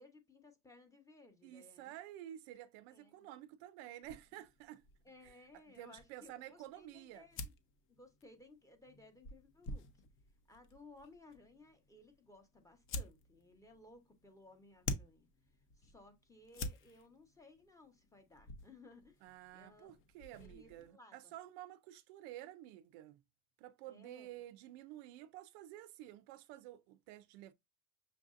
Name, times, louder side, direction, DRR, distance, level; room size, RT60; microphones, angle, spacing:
voice 1, 0.0-1.9 2.9-3.3 4.3-4.4 5.0-7.4 7.9-9.9 10.5-19.9 20.4-21.3 23.9-24.4, left 2 dB, 10° left, 0.9 m, -60 dB
voice 2, 1.4-4.8 5.2-5.4 5.7-7.3 19.2-23.2 23.6-27.5, right 13 dB, 60° right, 0.5 m, -51 dB
sound 1, 4.0-20.9, left 2 dB, 35° left, 0.7 m, -50 dB
6.4 x 2.6 x 2.4 m
supercardioid pair, 145°, 37 cm